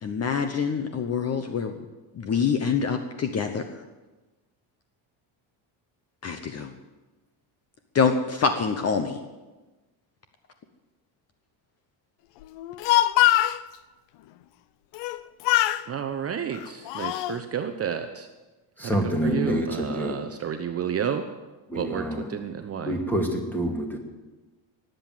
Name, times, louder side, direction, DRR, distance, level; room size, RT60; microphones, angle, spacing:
voice 1, 0.0-1.7 2.2-3.6 6.2-6.7 7.9-9.2, left 6 dB, 30° left, 8 dB, 0.9 m, -25 dB
Speech, 12.6-13.6 14.9-15.2 15.4-15.8 16.5-17.4, left 15 dB, 65° left, 0.7 m, -22 dB
voice 2, 15.9-18.3 18.8-21.3 21.7-23.0, right 8 dB, 30° right, 7 dB, 0.8 m, -31 dB
voice 3, 18.8-20.1 21.7-22.2 22.8-24.0, equal, 5° left, 2 dB, 2.4 m, -27 dB
18.5 x 7.9 x 9.2 m, 1.2 s
cardioid pair, 150°, 48 cm